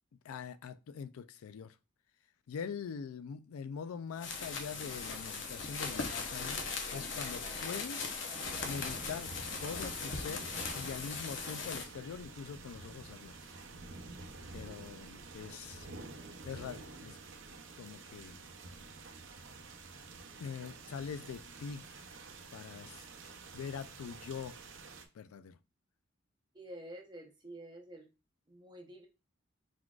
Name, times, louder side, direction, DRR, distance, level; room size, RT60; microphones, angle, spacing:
voice 1, 0.2-1.8 2.5-6.6 6.9-8.1 8.6-9.3 9.6-13.5 14.5-16.0 16.4-17.2 17.8-18.4 20.4-21.8 22.5-23.0 23.5-24.6 25.1-25.6, left 6 dB, 90° left, 0.4 m, -43 dB
sound 1, 4.1-11.8, left 4 dB, 60° left, 0.8 m, -39 dB
sound 2, 8.4-25.1, right 3 dB, 65° right, 0.6 m, -49 dB
voice 2, 26.5-28.1 28.5-29.1, right 1 dB, 20° right, 0.7 m, -49 dB
4.6 x 4.0 x 2.4 m
head